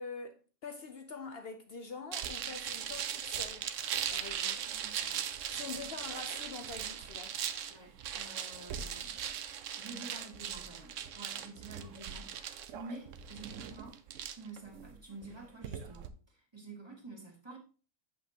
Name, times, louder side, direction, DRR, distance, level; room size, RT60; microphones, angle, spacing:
voice 1, 0.0-3.7 4.1-4.6 5.5-7.4, left 4 dB, 60° left, 0.6 m, -45 dB
sound 1, 2.1-16.1, right 9 dB, 65° right, 0.9 m, -39 dB
voice 2, 4.7-5.2 7.7-9.2 9.7-14.0 14.3-17.6, right 2 dB, 15° right, 1.9 m, -49 dB
8.2 x 6.4 x 2.8 m
omnidirectional pair, 1.6 m